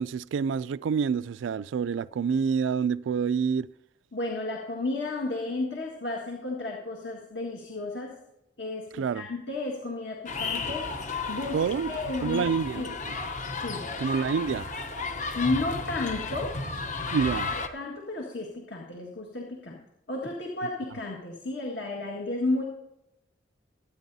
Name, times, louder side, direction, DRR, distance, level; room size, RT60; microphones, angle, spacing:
voice 1, 0.0-3.7 9.0-9.3 11.5-13.1 14.0-14.7 17.1-17.5, right 6 dB, 85° right, 0.3 m, -27 dB
voice 2, 4.1-8.2 8.6-11.6 11.9-12.9 13.6-13.9 15.3-16.6 17.7-19.8 20.1-22.6, left 2 dB, 65° left, 1.7 m, -32 dB
sound 1, 10.3-17.7, left 3 dB, 40° left, 0.8 m, -33 dB
23.0 x 9.8 x 2.7 m
head